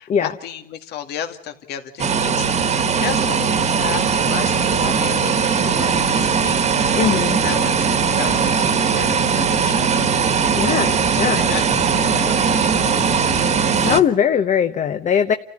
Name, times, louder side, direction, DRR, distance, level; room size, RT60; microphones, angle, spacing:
voice 1, 0.0-7.9 8.2-10.2 11.4-13.3, left 9 dB, 75° left, 7 dB, 2.2 m, -33 dB
sound 1, 2.0-14.0, right 6 dB, 40° right, 1.5 m, -19 dB
voice 2, 6.9-7.4 10.6-11.5 13.7-15.3, left 8 dB, 45° left, 8 dB, 1.0 m, -20 dB
29.5 x 15.0 x 8.6 m, 0.81 s
cardioid pair, 110°, 17 cm